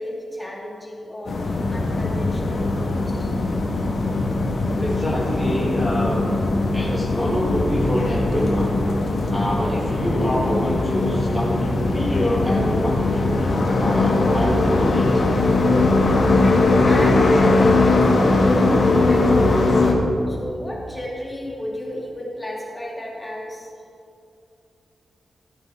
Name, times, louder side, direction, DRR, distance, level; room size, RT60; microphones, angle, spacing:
voice 1, 0.0-3.3 10.1-10.3 11.1-11.3 13.6-14.1 16.4-19.8 20.3-23.7, left 1 dB, 15° left, -3 dB, 2.4 m, -32 dB
sound 1, 1.3-19.9, left 2 dB, 65° left, 1.7 m, -20 dB
voice 2, 4.8-6.3 6.7-8.8 9.3-15.2, equal, ahead, -6 dB, 2.1 m, -26 dB
15.0 x 9.5 x 3.7 m, 2.6 s
wide cardioid pair, 90°, 0 cm